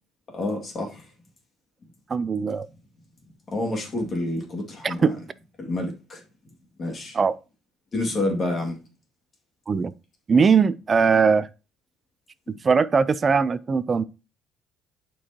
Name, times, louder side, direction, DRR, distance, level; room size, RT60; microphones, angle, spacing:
voice 1, 0.3-1.0 3.5-5.1 5.6-6.2 6.8-7.2 7.9-8.8, left 2 dB, 35° left, 2.1 m, -28 dB
voice 2, 2.1-2.7 4.8-5.2 7.1-7.3 9.7-9.9 10.3-11.5 12.6-14.0, right 5 dB, 30° right, 0.4 m, -20 dB
11.0 x 4.6 x 2.9 m
cardioid pair, 120°, 0 cm